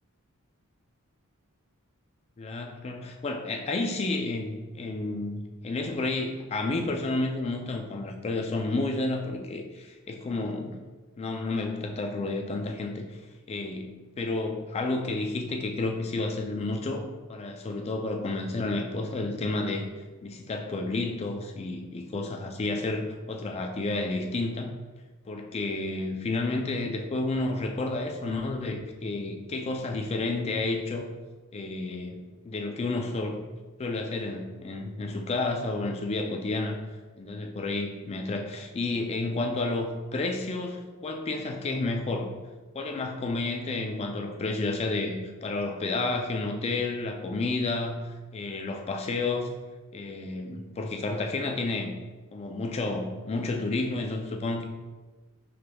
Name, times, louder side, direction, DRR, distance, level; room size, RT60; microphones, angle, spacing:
voice 1, 2.4-10.8 11.2-13.1 13.5-17.0 17.3-19.9 20.2-24.8 25.3-31.1 31.5-33.4 33.8-36.8 37.2-42.3 42.7-49.5 49.9-52.0 52.3-54.6, left 2 dB, 30° left, 3 dB, 0.3 m, -31 dB
4.9 x 3.0 x 2.2 m, 1.3 s
head